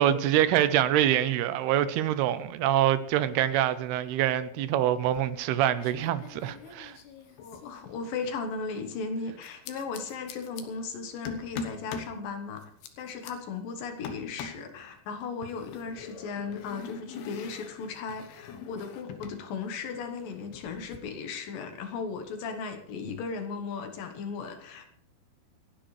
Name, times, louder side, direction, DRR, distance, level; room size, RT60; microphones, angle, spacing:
voice 1, 0.0-6.9, right 11 dB, 85° right, 2.8 m, -25 dB
sound 1, 5.0-5.5 5.8-8.4 9.4-10.6 11.3-12.2 12.6-13.3 14.0-14.7 15.4-19.4 19.7-21.0, left 6 dB, 85° left, 3.3 m, -43 dB
voice 2, 7.4-12.6 13.0-24.9, left 5 dB, 65° left, 2.8 m, -36 dB
28.5 x 10.5 x 3.3 m
omnidirectional pair, 4.6 m